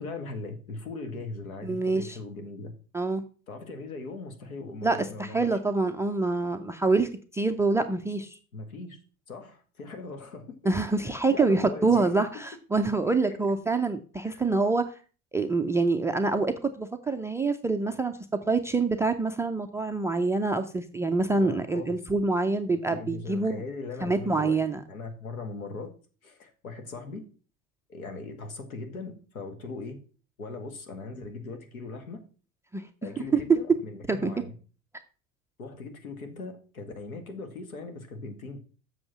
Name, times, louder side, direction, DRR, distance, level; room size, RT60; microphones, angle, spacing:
voice 1, 0.0-2.7 3.5-5.5 8.5-9.0 9.3-10.6 11.0-12.1 13.1-13.4 14.2-14.5 21.3-21.9 22.7-24.6 24.9-25.9 26.2-27.2 27.9-30.0 30.4-32.2 33.0-34.5 35.6-38.6, left 3 dB, 75° left, 6 dB, 1.8 m, -39 dB
voice 2, 1.6-2.2 2.9-3.2 4.8-8.4 10.7-14.9 15.3-18.2 18.5-23.6 24.0-24.8 32.7-32.9 33.3-33.4 34.1-34.3, right 3 dB, 5° right, 4 dB, 0.3 m, -26 dB
7.8 x 6.3 x 5.9 m, 0.38 s
figure-of-eight pair, 75°, 43 cm